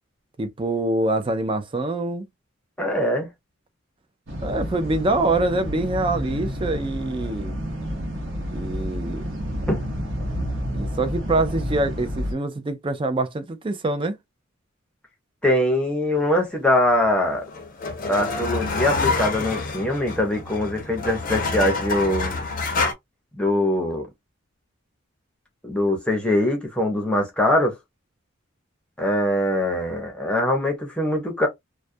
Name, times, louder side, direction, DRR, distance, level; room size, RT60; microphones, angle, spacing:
voice 1, 0.4-2.3 4.4-7.6 8.5-9.2 10.7-14.2, right 2 dB, 25° right, 0.4 m, -25 dB
voice 2, 2.8-3.3 9.7-9.8 15.4-17.4 18.1-22.3 23.3-24.1 25.6-27.8 29.0-31.5, left 1 dB, 5° left, 0.7 m, -22 dB
sound 1, 4.3-12.3, equal, 65° right, 0.8 m, -30 dB
sound 2, 17.0-22.9, left 3 dB, 40° left, 0.5 m, -27 dB
2.3 x 2.1 x 2.5 m
head